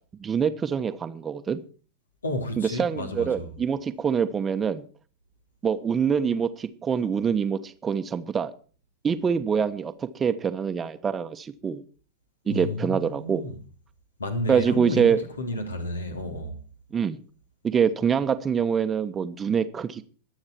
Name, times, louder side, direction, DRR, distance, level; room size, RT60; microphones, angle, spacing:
voice 1, 0.2-1.6 2.6-4.8 5.6-8.5 9.0-11.8 12.5-13.4 14.5-15.2 16.9-17.2 17.6-20.0, right 7 dB, 20° right, 1.2 m, -25 dB
voice 2, 2.2-3.5 12.5-13.6 14.2-16.6, left 1 dB, 75° left, 3.1 m, -32 dB
23.0 x 8.8 x 4.5 m
figure-of-eight pair, 90°, 0 cm